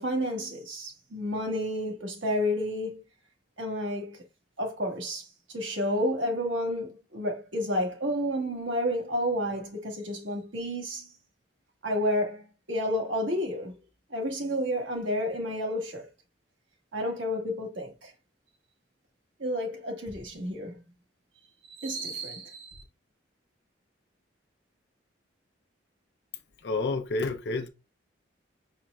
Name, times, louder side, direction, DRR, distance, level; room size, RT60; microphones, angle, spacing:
voice 1, 0.0-3.0 3.6-4.2 4.6-11.1 11.8-12.4 12.7-13.8 14.1-16.1 16.9-18.1 19.4-20.8 21.7-22.8, equal, 80° right, 1.4 m, -30 dB
voice 2, 26.6-27.7, left 3 dB, 60° left, 0.6 m, -29 dB
5.1 x 4.4 x 2.3 m
head